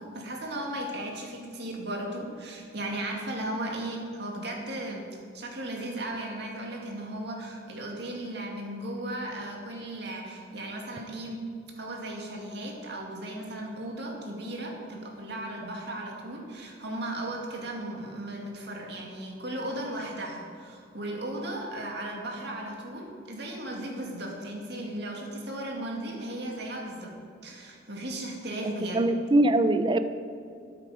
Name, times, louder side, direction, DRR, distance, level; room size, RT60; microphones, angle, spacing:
voice 1, 0.0-11.5 11.8-27.1 27.4-29.1, right 1 dB, 65° right, 0 dB, 2.2 m, -36 dB
voice 2, 28.9-30.0, right 1 dB, 25° right, 11 dB, 0.4 m, -22 dB
12.5 x 9.4 x 5.0 m, 2.5 s
head